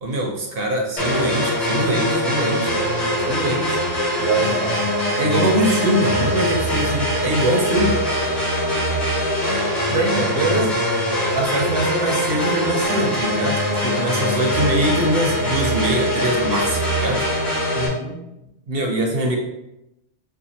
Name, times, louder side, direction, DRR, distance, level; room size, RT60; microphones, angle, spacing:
voice 1, 0.0-2.8 3.3-3.8 5.1-8.0 9.9-10.8 11.3-17.3 18.7-19.4, right 1 dB, 60° right, 1 dB, 0.8 m, -23 dB
sound 1, 1.0-17.9, equal, 45° left, 1.2 m, -22 dB
voice 2, 4.2-4.8 8.1-8.4 17.7-18.2, right 3 dB, ahead, -4 dB, 0.5 m, -26 dB
5.6 x 2.2 x 2.8 m, 0.90 s
omnidirectional pair, 1.2 m